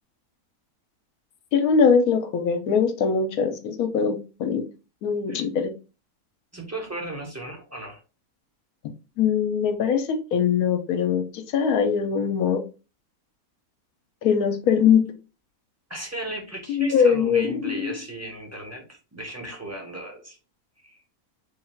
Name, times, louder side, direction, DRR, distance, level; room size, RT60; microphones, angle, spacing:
voice 1, 1.5-4.6 5.0-5.7 9.2-12.6 14.2-15.0 16.7-17.9, left 6 dB, 80° left, 6 dB, 1.1 m, -22 dB
voice 2, 6.5-8.0 15.9-20.4 20.8-21.0, right 1 dB, 15° right, 0 dB, 0.6 m, -36 dB
3.4 x 2.3 x 4.2 m, 0.33 s
omnidirectional pair, 1.6 m